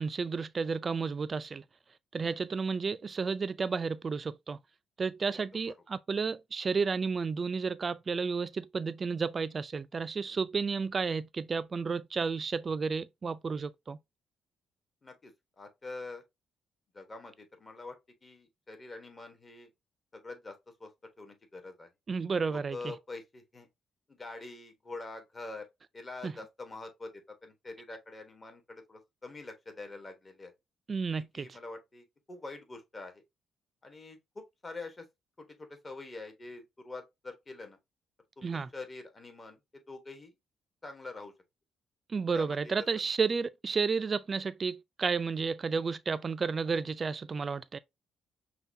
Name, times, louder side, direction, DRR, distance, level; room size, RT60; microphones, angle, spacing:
voice 1, 0.0-1.6 2.1-4.6 5.0-14.0 22.1-22.8 26.2-26.3 30.9-31.5 38.4-38.7 42.1-47.8, right 5 dB, 35° right, 0.3 m, -32 dB
voice 2, 15.0-16.2 16.9-18.0 18.2-19.7 20.1-20.9 21.2-21.9 22.5-23.7 24.1-25.7 25.9-30.5 31.3-33.2 33.8-35.1 35.4-37.8 38.4-40.3 40.8-41.3 42.3-42.7, left 3 dB, 30° left, 1.1 m, -45 dB
5.6 x 2.3 x 2.6 m
cardioid pair, 90°, 0 cm